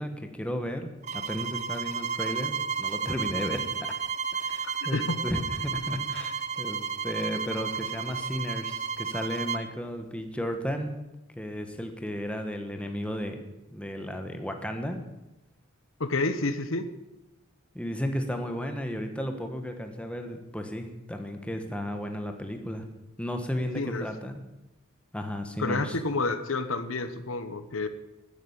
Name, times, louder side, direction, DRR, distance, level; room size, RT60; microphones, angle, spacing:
voice 1, 0.0-3.7 4.3-10.9 11.3-13.4 13.7-15.0 17.7-22.8 23.2-24.3 25.1-26.0, equal, 5° left, 5 dB, 1.4 m, -34 dB
sound 1, 1.0-9.7, right 6 dB, 35° right, 0.7 m, -32 dB
voice 2, 16.0-16.9 23.7-24.1 25.6-27.9, left 3 dB, 75° left, 10 dB, 1.1 m, -29 dB
13.0 x 10.0 x 8.3 m, 0.99 s
head